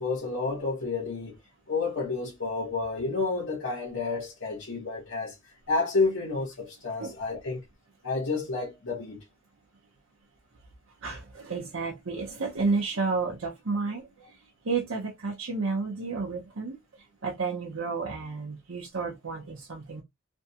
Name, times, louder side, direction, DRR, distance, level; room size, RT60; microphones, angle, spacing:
voice 1, 0.0-1.4 1.7-5.3 5.7-7.6 8.0-9.2, left 3 dB, 65° left, 1.1 m, -30 dB
voice 2, 11.0-14.4 14.6-16.8 17.2-20.0, right 4 dB, 70° right, 0.8 m, -31 dB
3.4 x 2.2 x 2.8 m
head